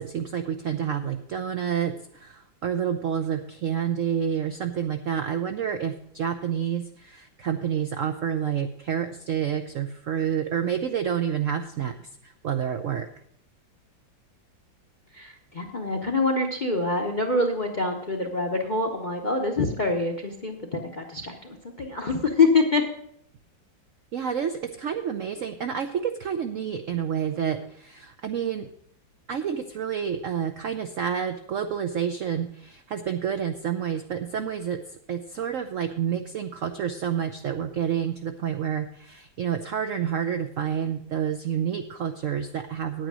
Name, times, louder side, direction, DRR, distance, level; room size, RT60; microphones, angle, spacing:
voice 1, 0.0-11.9 12.2-13.1 24.1-28.7 29.3-43.1, right 8 dB, 85° right, 7 dB, 0.6 m, -29 dB
voice 2, 15.1-22.9, left 3 dB, 45° left, 4 dB, 0.6 m, -25 dB
9.2 x 9.0 x 6.1 m, 0.68 s
omnidirectional pair, 2.2 m